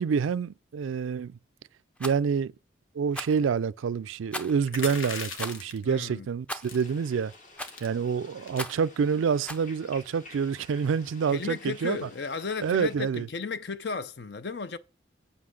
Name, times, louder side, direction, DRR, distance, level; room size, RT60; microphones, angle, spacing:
voice 1, 0.0-1.4 2.0-2.5 3.0-7.3 7.8-12.0 12.6-13.3, right 6 dB, 85° right, 0.4 m, -27 dB
Rattle, 2.0-2.2 3.1-3.4 4.3-4.7 5.4-5.6 6.5-6.8 7.6-7.9 8.5-8.9 9.5-9.7, equal, 5° left, 0.5 m, -37 dB
sound 1, 4.7-5.8 6.6-6.9 7.3-7.4 7.6-7.9 8.4-8.7, left 4 dB, 90° left, 1.4 m, -37 dB
voice 2, 5.8-6.3 11.3-14.8, left 5 dB, 60° left, 0.6 m, -34 dB
sound 2, 6.7-12.9, left 2 dB, 40° left, 1.4 m, -52 dB
8.2 x 5.7 x 6.3 m
head